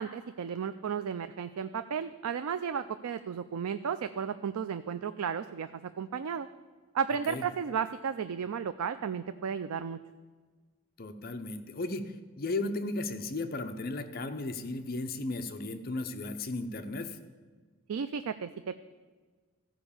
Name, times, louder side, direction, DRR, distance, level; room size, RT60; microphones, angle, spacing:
voice 1, 0.0-6.5 6.9-10.0 17.9-18.8, right 7 dB, 90° right, 11 dB, 0.4 m, -34 dB
voice 2, 11.0-17.2, left 2 dB, 45° left, 8 dB, 0.7 m, -35 dB
14.5 x 4.9 x 7.0 m, 1.4 s
head